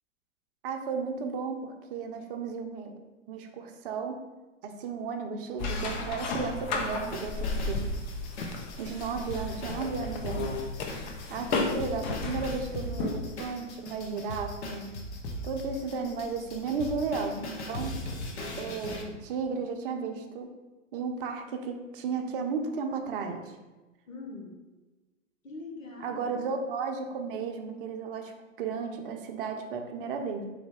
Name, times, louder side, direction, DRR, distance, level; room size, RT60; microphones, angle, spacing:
voice 1, 0.6-2.9 3.3-4.1 4.6-7.8 8.8-10.5 11.3-15.0 15.4-17.9 18.6-20.5 20.9-23.4 26.0-28.3 28.6-30.4, right 5 dB, 45° right, 4 dB, 0.6 m, -34 dB
sound 1, 5.6-13.4, left 3 dB, 35° left, 0.6 m, -34 dB
sound 2, 7.0-19.0, left 1 dB, 60° left, 0.9 m, -39 dB
voice 2, 11.3-11.7 15.8-16.2 24.1-24.6 25.4-26.4, left 3 dB, 85° left, 1 dB, 1.2 m, -43 dB
4.0 x 3.3 x 3.5 m, 1.2 s
hypercardioid pair, 125°, 39 cm